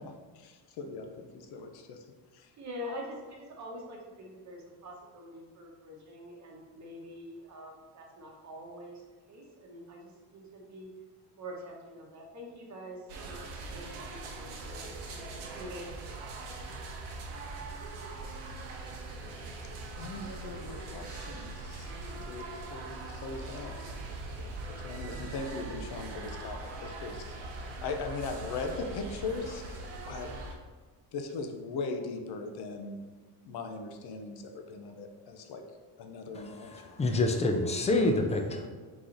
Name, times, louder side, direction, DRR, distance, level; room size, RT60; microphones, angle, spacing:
voice 1, 0.0-2.0 2.3-2.5 20.0-24.0 24.4-29.8 30.1-30.3 31.1-33.0 33.4-35.6 36.0-36.7, left 3 dB, 60° left, 5 dB, 0.7 m, -39 dB
voice 2, 2.6-10.9 11.4-15.8, equal, 40° right, 0 dB, 1.0 m, -45 dB
sound 1, 13.1-30.5, right 2 dB, 90° right, 0.9 m, -41 dB
voice 3, 36.3-38.7, left 2 dB, 15° left, 3 dB, 0.4 m, -28 dB
4.0 x 3.0 x 3.8 m, 1.4 s
cardioid pair, 115°, 45 cm